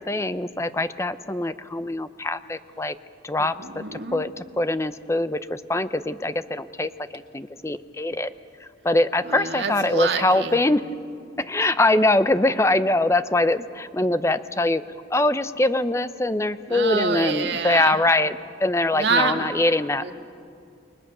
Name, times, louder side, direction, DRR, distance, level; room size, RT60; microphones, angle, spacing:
voice 1, 0.0-3.0 3.2-8.3 8.6-10.8 11.4-14.8 15.1-20.0, left 2 dB, 15° left, 13 dB, 0.6 m, -23 dB
voice 2, 3.4-4.3 9.2-10.6 16.7-18.0 18.9-19.5 20.0-20.1, right 4 dB, 65° right, 5 dB, 1.8 m, -27 dB
29.5 x 22.0 x 6.8 m, 2.4 s
head